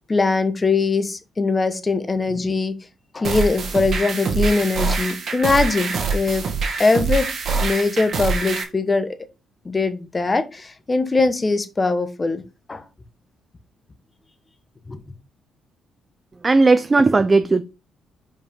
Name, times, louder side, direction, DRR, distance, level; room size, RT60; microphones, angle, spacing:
voice 1, 0.1-2.8 3.1-6.4 6.8-7.3 7.6-9.2 9.6-12.4 12.7-12.8 14.9-15.0, left 3 dB, 25° left, 1.1 m, -21 dB
sound 1, 3.2-8.6, right 4 dB, 60° right, 2.0 m, -24 dB
voice 2, 16.4-17.6, right 3 dB, 25° right, 0.5 m, -16 dB
5.2 x 4.9 x 5.3 m
cardioid pair, 90°, 0 cm